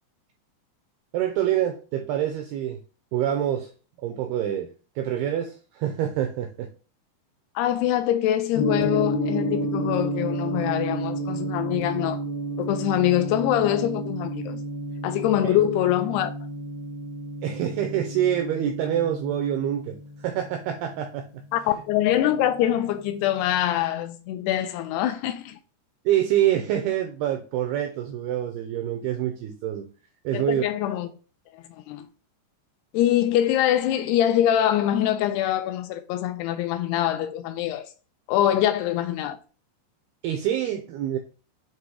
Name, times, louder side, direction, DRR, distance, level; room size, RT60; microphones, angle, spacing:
voice 1, 1.1-2.8 3.1-3.7 4.0-6.7 15.4-15.6 17.4-21.4 26.1-29.9 30.2-30.7 40.2-41.2, right 11 dB, 90° right, 2.2 m, -26 dB
voice 2, 7.6-12.2 12.6-14.6 15.0-16.3 21.5-25.6 30.3-31.1 31.8-32.1 32.9-37.9 38.3-39.4, left 12 dB, 85° left, 2.3 m, -24 dB
Gong, 8.6-22.7, right 1 dB, 70° left, 2.1 m, -31 dB
7.7 x 2.9 x 4.7 m
omnidirectional pair, 5.2 m